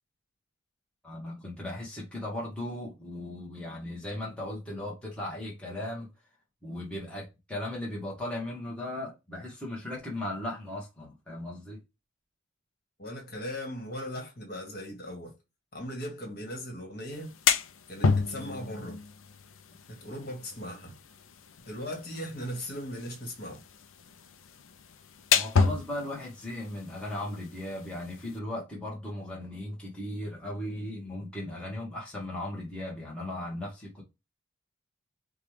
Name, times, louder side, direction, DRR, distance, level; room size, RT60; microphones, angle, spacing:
voice 1, 1.0-6.1 6.6-11.8 25.3-34.0, left 1 dB, 5° left, 1.1 m, -37 dB
voice 2, 13.0-15.3 15.7-17.3 17.9-19.0 19.9-20.9 21.7-23.6, equal, 45° left, 1.6 m, -38 dB
sound 1, 17.1-28.4, left 5 dB, 80° left, 0.5 m, -32 dB
4.9 x 2.3 x 3.2 m
head